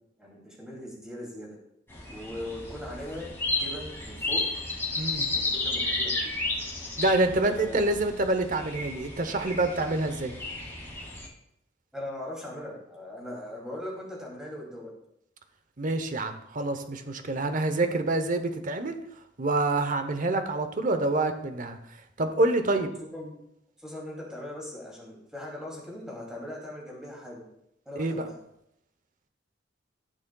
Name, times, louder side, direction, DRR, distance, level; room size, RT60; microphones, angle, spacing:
voice 1, 0.2-1.6 2.1-3.3 3.6-4.4 5.3-6.3 7.3-7.9 11.9-14.9 22.7-22.8 23.1-23.4 23.8-27.4 27.9-28.3, left 1 dB, 5° right, -3 dB, 2.6 m, -40 dB
sound 1, 1.9-11.3, left 2 dB, 15° left, 2.2 m, -33 dB
voice 2, 5.0-5.3 7.0-10.3 15.8-19.0 19.4-21.8 22.2-22.9 28.0-28.3, right 2 dB, 45° right, 8 dB, 0.8 m, -27 dB
15.0 x 6.3 x 2.3 m, 0.81 s
head